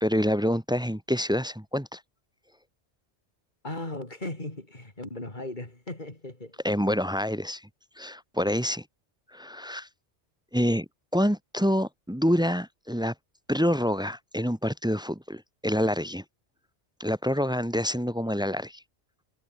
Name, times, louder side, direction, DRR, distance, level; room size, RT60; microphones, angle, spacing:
voice 1, 0.0-2.0 6.6-7.6 8.0-8.8 9.3-9.9 10.5-13.1 13.5-16.2 17.0-18.8, equal, 5° right, 0.6 m, -27 dB
voice 2, 3.6-6.6, left 2 dB, 45° left, 4.1 m, -37 dB
omnidirectional pair, 1.1 m